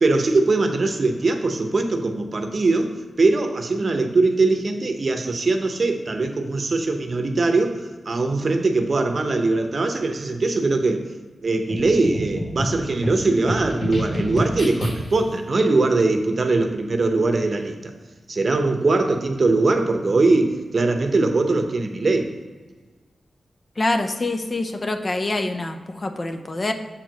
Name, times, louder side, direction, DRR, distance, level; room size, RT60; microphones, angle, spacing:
voice 1, 0.0-11.0 11.4-17.9 18.3-22.3, right 3 dB, 50° right, 5 dB, 0.8 m, -21 dB
sound 1, 11.7-15.3, equal, 60° left, 1.7 m, -28 dB
voice 2, 23.8-26.7, left 2 dB, 35° left, 6 dB, 0.7 m, -25 dB
7.2 x 4.6 x 5.2 m, 1.4 s
wide cardioid pair, 90°, 0 cm